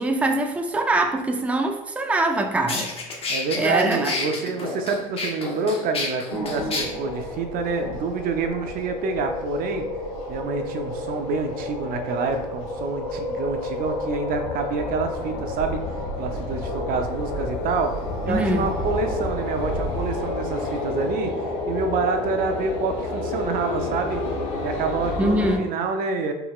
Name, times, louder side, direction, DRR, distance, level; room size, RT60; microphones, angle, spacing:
voice 1, 0.0-4.1 18.3-18.7 25.2-25.7, right 2 dB, 5° right, 4 dB, 0.4 m, -24 dB
sound 1, 2.2-2.3 2.7-6.8, left 3 dB, 35° left, 1.0 m, -29 dB
voice 2, 3.3-9.9 10.3-15.8 16.2-17.9 18.2-24.2 24.6-26.3, right 4 dB, 55° right, 6 dB, 0.6 m, -27 dB
sound 2, 6.3-25.6, left 2 dB, 90° left, 1.3 m, -30 dB
4.4 x 3.8 x 2.3 m, 0.96 s
supercardioid pair, 90°, 17 cm